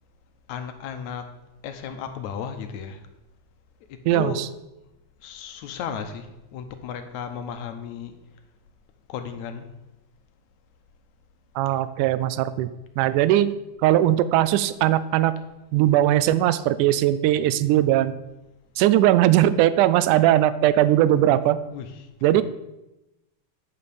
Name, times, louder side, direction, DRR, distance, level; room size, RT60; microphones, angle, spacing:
voice 1, 0.5-1.3 1.6-3.0 3.9-4.4 5.2-8.2 9.1-9.7 21.7-22.4, left 7 dB, 75° left, 8 dB, 2.1 m, -35 dB
voice 2, 4.1-4.5 11.6-12.7 13.0-13.6 13.8-15.3 15.7-18.1 18.8-21.6 22.2-22.4, right 13 dB, 85° right, 15 dB, 2.1 m, -19 dB
9.5 x 5.7 x 6.8 m, 0.97 s
omnidirectional pair, 3.5 m